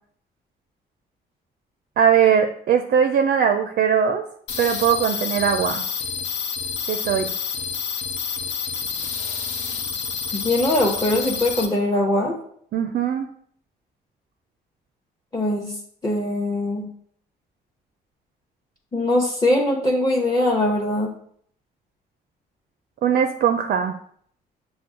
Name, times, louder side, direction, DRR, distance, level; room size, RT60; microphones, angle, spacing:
voice 1, 2.0-4.2 4.6-5.8 6.9-7.3 12.7-13.3 23.0-23.9, right 7 dB, 50° right, 6 dB, 0.4 m, -20 dB
sound 1, 4.5-11.7, left 6 dB, 70° left, 0.6 m, -28 dB
voice 2, 10.3-12.3 15.3-15.7 16.0-16.9 18.9-21.1, left 1 dB, 20° left, -2 dB, 0.8 m, -21 dB
5.9 x 2.1 x 3.7 m, 0.62 s
supercardioid pair, 70°, 19 cm